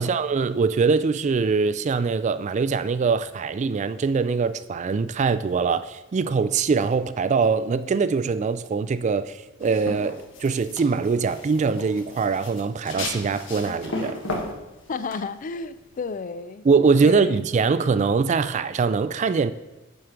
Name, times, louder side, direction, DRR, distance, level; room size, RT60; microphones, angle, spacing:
voice 1, 0.0-14.2 16.6-19.5, right 5 dB, 35° right, 0.3 m, -23 dB
sound 1, 9.6-16.1, left 2 dB, 65° left, 1.4 m, -35 dB
voice 2, 14.9-16.7 17.0-17.4, left 4 dB, 40° left, 0.4 m, -32 dB
7.6 x 5.2 x 5.8 m
head